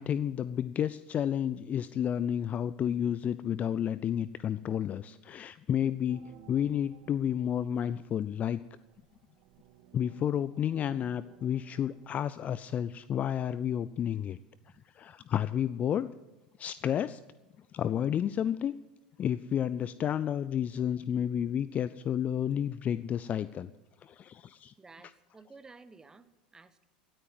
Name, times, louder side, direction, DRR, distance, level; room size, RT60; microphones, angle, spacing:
voice 1, 0.0-6.2 6.5-8.6 9.9-14.4 14.9-16.1 16.6-17.2 17.7-18.7 19.2-23.7 24.0-24.7, left 9 dB, 35° left, 16 dB, 0.4 m, -31 dB
sound 1, 6.1-12.2, right 9 dB, 50° right, 1.4 m, -59 dB
voice 2, 24.8-26.9, right 3 dB, 15° right, 12 dB, 1.1 m, -54 dB
16.5 x 9.4 x 7.7 m, 1.0 s
figure-of-eight pair, 80°, 4 cm